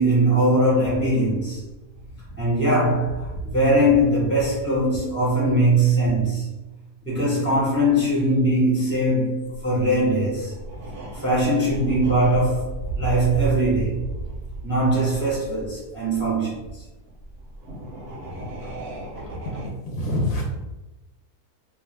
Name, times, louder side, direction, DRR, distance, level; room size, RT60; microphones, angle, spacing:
voice 1, 0.0-1.6 2.4-6.5 7.0-10.5 11.1-14.0 14.6-16.8 18.3-18.5, right 1 dB, 10° right, -7 dB, 0.6 m, -21 dB
sound 1, 0.7-6.3 6.6-6.7 7.2-7.3 8.3-8.4 8.8-8.9 9.4-19.7, right 2 dB, 65° right, 0.7 m, -35 dB
voice 2, 19.6-20.6, left 1 dB, 70° left, -1 dB, 0.9 m, -26 dB
2.4 x 2.3 x 3.2 m, 1.1 s
omnidirectional pair, 1.6 m